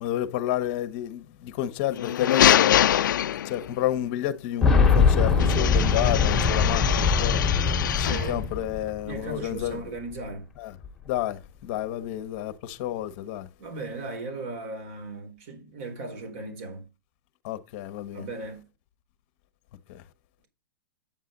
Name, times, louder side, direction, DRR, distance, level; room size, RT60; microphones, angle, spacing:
voice 1, 0.0-2.8 3.4-7.4 7.9-9.9 10.6-10.8 11.1-13.5 17.4-18.3 19.9-20.0, left 12 dB, 30° left, 1.1 m, -30 dB
sound 1, 1.9-3.8 5.4-8.4, left 11 dB, 65° left, 0.5 m, -24 dB
Boom, 4.6-9.4 9.6-9.7 10.8-10.9, left 5 dB, 5° left, 2.2 m, -22 dB
voice 2, 8.0-8.5 9.0-10.5 13.6-16.9 18.1-18.7, right 3 dB, 35° right, 4.3 m, -37 dB
9.1 x 7.4 x 3.9 m
hypercardioid pair, 170°, 11 cm